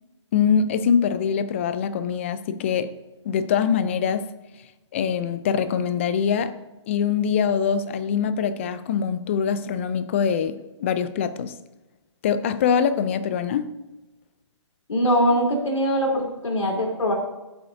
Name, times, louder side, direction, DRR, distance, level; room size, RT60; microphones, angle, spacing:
voice 1, 0.3-2.9 3.2-4.3 4.9-6.5 6.9-11.5 12.2-13.7, left 7 dB, 25° left, 0.4 m, -23 dB
voice 2, 14.9-17.1, equal, 85° left, 3.4 m, -22 dB
15.0 x 7.8 x 2.7 m
hypercardioid pair, 155°, 16 cm